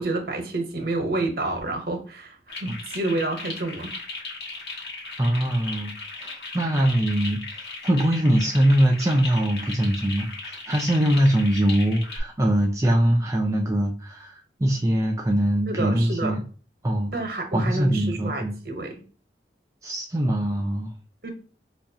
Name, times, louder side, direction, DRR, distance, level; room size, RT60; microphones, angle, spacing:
voice 1, 0.0-3.9 15.7-16.3 17.1-18.9 21.2-21.3, right 2 dB, 60° right, 4 dB, 0.9 m, -29 dB
sound 1, 2.5-12.2, left 3 dB, 75° left, 1.2 m, -37 dB
voice 2, 5.2-16.4 16.8-17.1 17.5-18.5 19.8-20.9, right 1 dB, 15° right, 1 dB, 0.3 m, -22 dB
5.0 x 2.3 x 2.7 m, 0.39 s
head